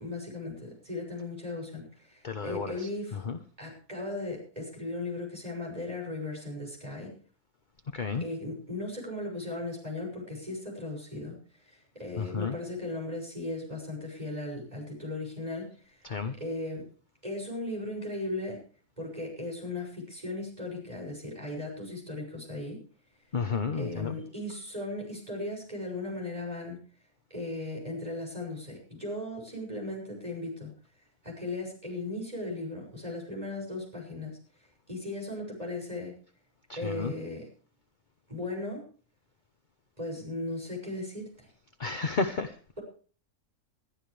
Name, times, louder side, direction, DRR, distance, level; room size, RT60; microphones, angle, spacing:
voice 1, 0.0-3.2 3.6-7.1 8.2-11.4 11.6-16.0 16.4-16.9 17.2-18.6 19.0-22.8 23.7-26.8 27.3-30.7 31.2-34.4 34.9-36.1 36.8-37.5 38.3-38.8 40.0-41.5, left 2 dB, 25° right, 0 dB, 6.7 m, -37 dB
voice 2, 2.2-3.4 7.9-8.2 12.2-12.6 16.0-16.4 23.3-24.2 36.7-37.1 41.8-42.6, left 4 dB, 35° left, 7 dB, 1.0 m, -32 dB
21.5 x 12.5 x 3.3 m, 0.41 s
omnidirectional pair, 1.6 m